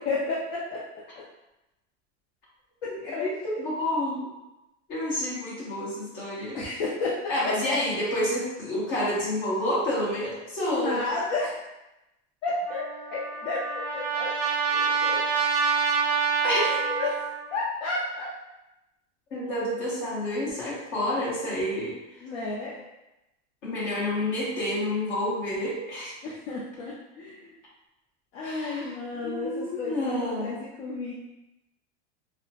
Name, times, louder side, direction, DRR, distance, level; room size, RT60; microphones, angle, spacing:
voice 1, 0.1-0.8 2.8-3.3 6.5-7.8 10.7-11.5 12.4-12.8 13.1-14.3 14.7-15.2 16.5-18.3 22.2-22.8 26.2-27.5 28.3-31.1, left 3 dB, 55° left, -5 dB, 0.5 m, -32 dB
voice 2, 3.2-4.3 4.9-6.6 7.3-11.0 16.4-16.8 19.3-22.0 23.6-26.1 28.4-28.9 29.2-30.6, left 1 dB, 35° left, -7 dB, 1.0 m, -29 dB
Trumpet, 12.7-17.5, right 5 dB, 35° right, 0.4 m, -27 dB
2.7 x 2.1 x 2.8 m, 0.96 s
supercardioid pair, 180°, 35 cm